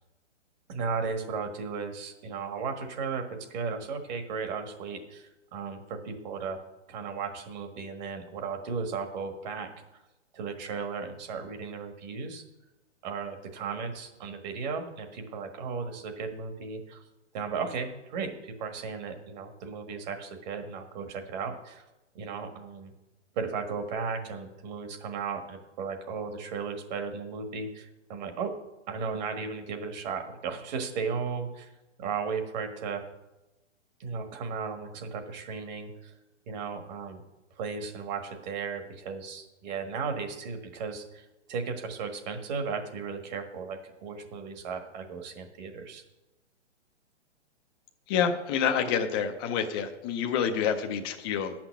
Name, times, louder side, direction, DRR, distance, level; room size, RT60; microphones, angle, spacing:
voice 1, 0.7-6.6 6.9-9.7 10.3-12.4 13.0-17.0 17.3-21.8 22.1-22.9 23.3-28.5 28.9-31.7 32.0-33.1 34.0-36.1 36.5-37.2 37.6-46.0, right 5 dB, 35° right, 5 dB, 1.5 m, -35 dB
voice 2, 48.1-51.5, left 7 dB, 20° left, 4 dB, 0.5 m, -28 dB
9.5 x 5.9 x 8.2 m, 1.0 s
hypercardioid pair, 145°, 36 cm